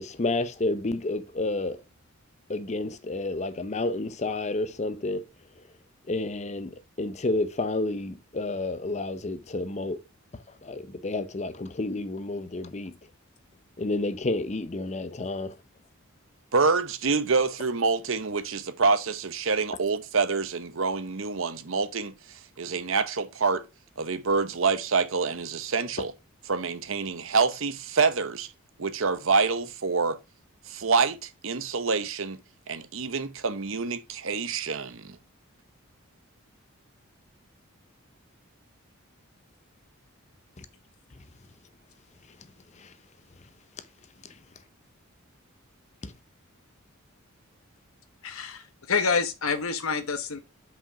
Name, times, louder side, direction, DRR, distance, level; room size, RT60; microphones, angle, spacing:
voice 1, 0.0-1.8 2.5-5.2 6.1-6.7 7.0-10.0 10.6-12.9 13.8-15.5 46.0-46.1, left 2 dB, 30° left, 0.6 m, -30 dB
voice 2, 16.5-23.6 24.0-26.1 26.5-28.5 28.8-30.2 30.7-32.4 32.7-35.2, right 4 dB, 65° right, 0.8 m, -26 dB
voice 3, 48.2-50.4, left 5 dB, 80° left, 1.0 m, -27 dB
5.8 x 5.1 x 4.7 m
head